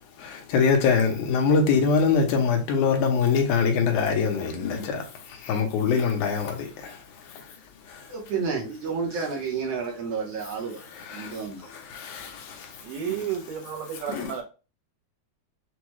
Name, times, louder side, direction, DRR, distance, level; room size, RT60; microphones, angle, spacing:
voice 1, 0.2-7.0 7.3-7.5 7.9-8.1 10.9-12.8 14.1-14.3, left 5 dB, 80° left, 2.2 m, -24 dB
voice 2, 8.1-10.8 11.1-11.7 13.1-13.2, right 5 dB, 65° right, 1.8 m, -31 dB
voice 3, 12.8-14.4, right 8 dB, 85° right, 2.5 m, -32 dB
6.1 x 2.3 x 3.0 m
omnidirectional pair, 3.5 m